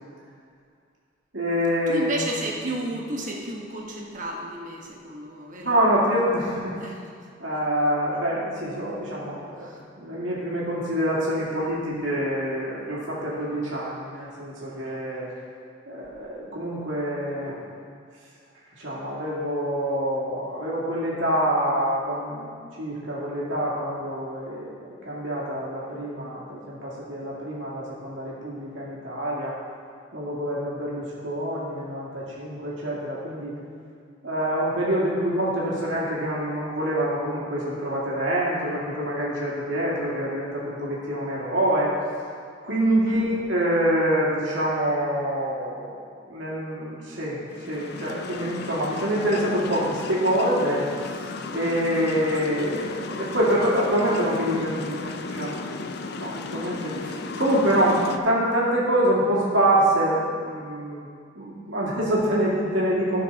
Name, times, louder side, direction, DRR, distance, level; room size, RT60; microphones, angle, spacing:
voice 1, 1.3-2.2 5.6-6.8 7.4-9.7 10.0-15.3 15.9-17.6 18.8-22.5 22.8-29.6 30.1-33.5 34.2-41.9 42.6-45.9 46.3-47.4 47.7-55.6 56.2-61.1 61.4-63.2, right 1 dB, 75° right, -6 dB, 2.4 m, -26 dB
voice 2, 1.9-5.8 6.8-7.0 9.6-9.8 42.8-43.2, right 1 dB, 40° right, -1 dB, 1.2 m, -33 dB
sound 1, 47.5-58.2, left 4 dB, 55° left, 0.5 m, -35 dB
14.5 x 5.9 x 4.0 m, 2.2 s
head